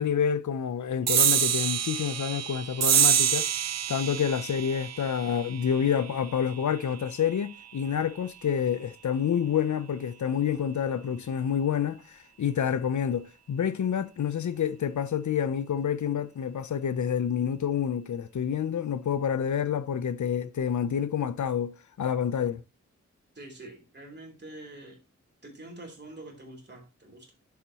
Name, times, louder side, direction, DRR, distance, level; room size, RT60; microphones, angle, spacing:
voice 1, 0.0-3.5 3.9-22.6, left 8 dB, 85° left, 0.6 m, -28 dB
sound 1, 1.1-7.9, right 9 dB, 60° right, 0.4 m, -27 dB
voice 2, 23.3-25.0 25.4-27.4, right 2 dB, 35° right, 3.3 m, -46 dB
10.5 x 7.2 x 2.9 m
wide cardioid pair, 110°, 29 cm